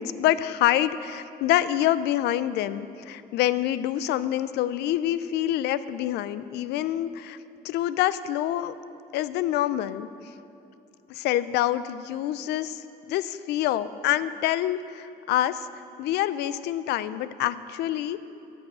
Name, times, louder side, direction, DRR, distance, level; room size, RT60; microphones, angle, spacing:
voice 1, 0.0-7.4 7.6-8.7 9.1-10.1 11.1-18.3, left 12 dB, 80° left, 15 dB, 0.4 m, -26 dB
11.0 x 6.1 x 7.5 m, 2.7 s
cardioid pair, 110°, 17 cm